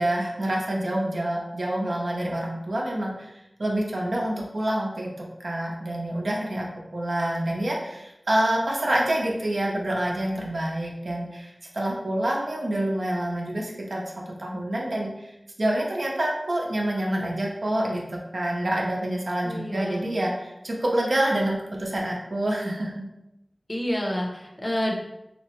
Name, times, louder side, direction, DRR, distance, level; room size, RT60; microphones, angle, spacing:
voice 1, 0.0-14.0 14.4-15.3 15.6-23.1, right 1 dB, 75° right, -2 dB, 0.5 m, -27 dB
voice 2, 19.4-20.1 23.7-24.9, equal, 30° left, -1 dB, 0.6 m, -28 dB
2.8 x 2.1 x 2.9 m, 0.89 s
wide cardioid pair, 50°, 0 cm